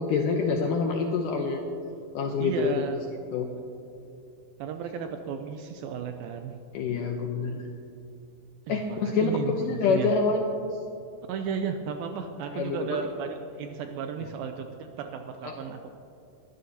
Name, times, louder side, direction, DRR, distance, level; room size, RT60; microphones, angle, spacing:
voice 1, 0.0-1.6 2.1-2.9 3.3-3.5 6.7-7.7 8.7-10.7 12.5-13.0 15.4-15.6, left 4 dB, 80° left, 2 dB, 1.9 m, -26 dB
voice 2, 2.4-3.0 4.6-6.6 8.7-10.1 11.3-16.0, right 7 dB, 80° right, 6 dB, 2.2 m, -34 dB
21.5 x 12.5 x 2.8 m, 2.7 s
omnidirectional pair, 4.7 m